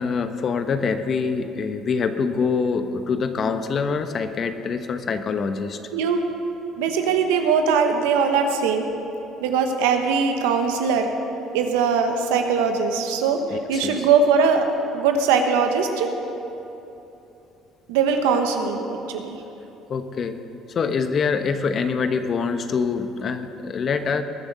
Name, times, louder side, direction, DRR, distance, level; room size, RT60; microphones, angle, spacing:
voice 1, 0.0-5.8 13.5-14.0 19.9-20.4 20.7-24.2, left 5 dB, 50° left, 9 dB, 1.0 m, -25 dB
voice 2, 6.8-8.9 9.4-11.1 11.5-14.7 14.9-16.1 17.9-19.4, right 5 dB, 85° right, 5 dB, 1.2 m, -21 dB
21.0 x 7.2 x 6.8 m, 3.0 s
supercardioid pair, 70°, 0 cm